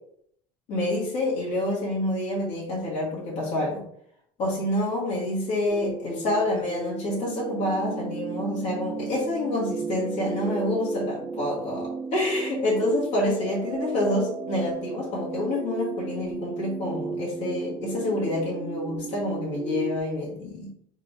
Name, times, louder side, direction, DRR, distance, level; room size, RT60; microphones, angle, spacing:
voice 1, 0.7-3.8 4.4-20.7, left 1 dB, 60° left, -5 dB, 1.6 m, -27 dB
sound 1, 5.7-20.0, right 4 dB, 20° right, 0.3 m, -35 dB
3.7 x 2.7 x 4.6 m, 0.68 s
cardioid pair, 135°, 13 cm